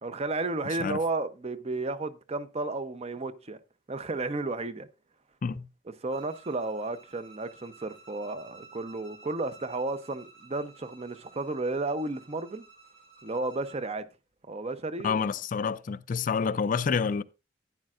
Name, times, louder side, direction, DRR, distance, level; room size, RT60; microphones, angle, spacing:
voice 1, 0.0-3.6 3.9-4.9 5.9-12.6 13.2-14.0 14.5-15.2, right 2 dB, 35° right, 0.7 m, -33 dB
Bowed string instrument, 6.1-13.9, right 4 dB, 85° right, 3.7 m, -54 dB
voice 2, 15.0-17.2, left 6 dB, 45° left, 0.4 m, -28 dB
12.0 x 9.7 x 2.5 m
head